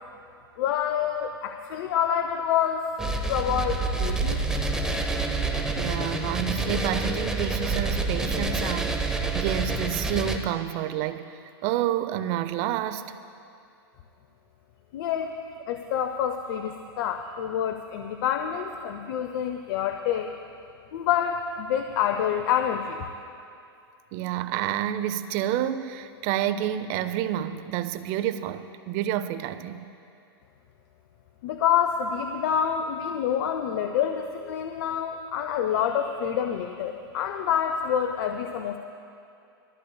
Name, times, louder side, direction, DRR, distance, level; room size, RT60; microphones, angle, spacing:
voice 1, 0.6-2.9 3.3-4.4 14.9-15.3 15.7-20.3 20.9-23.1 31.4-38.8, left 9 dB, 60° left, 0.7 m, -27 dB
sound 1, 3.0-10.4, right 3 dB, 5° right, 0.9 m, -27 dB
voice 2, 5.7-13.2 24.1-29.9, right 12 dB, 45° right, 0.6 m, -29 dB
22.0 x 14.5 x 2.3 m
hypercardioid pair, 110°, 13 cm